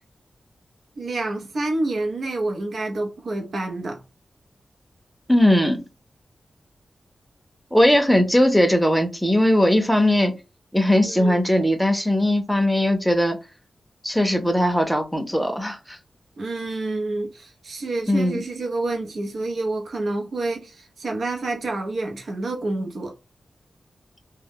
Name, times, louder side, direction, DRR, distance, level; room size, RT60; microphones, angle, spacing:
voice 1, 1.0-4.0 11.0-11.4 16.4-23.1, right 2 dB, 80° right, 0.7 m, -28 dB
voice 2, 5.3-5.8 7.7-10.4 10.7-13.4 14.0-15.8 18.1-18.4, left 1 dB, ahead, 0.6 m, -19 dB
2.2 x 2.0 x 3.4 m
wide cardioid pair, 95°, 0 cm